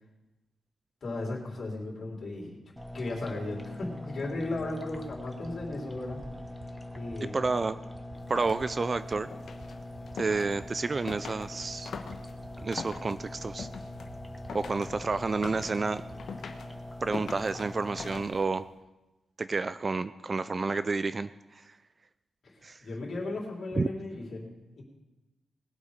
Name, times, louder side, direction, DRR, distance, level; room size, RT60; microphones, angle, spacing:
voice 1, 1.0-2.6 2.9-6.2 6.9-7.4 22.8-24.8, left 2 dB, 40° left, -2 dB, 3.8 m, -36 dB
sound 1, 2.8-18.2, left 1 dB, 5° left, 1.0 m, -43 dB
sound 2, 4.6-4.7 4.9-5.2 5.4-5.7 5.9-6.2 6.4-6.7 6.9-7.2 7.4-7.7 7.9-8.2 8.4-8.7 8.9-9.2 9.4-9.7 9.9-10.2 10.4-10.7 10.9-11.2 11.4-11.7 11.9-12.2 12.4-12.7 12.9-13.2 13.4-13.7 13.9-14.2 14.4-14.6 14.9-15.2 15.4-15.6 15.9-16.2, right 3 dB, 80° right, 4.6 m, -50 dB
voice 2, 7.2-7.8 8.3-9.3 10.1-11.9 12.6-13.7 14.5-16.0 17.0-18.7 19.4-21.8 22.6-22.8 23.8-23.9, right 3 dB, 25° right, 13 dB, 0.3 m, -30 dB
sound 3, 8.1-18.7, left 5 dB, 60° left, 1.2 m, -44 dB
20.0 x 8.3 x 5.1 m, 1.0 s
wide cardioid pair, 165°, 0 cm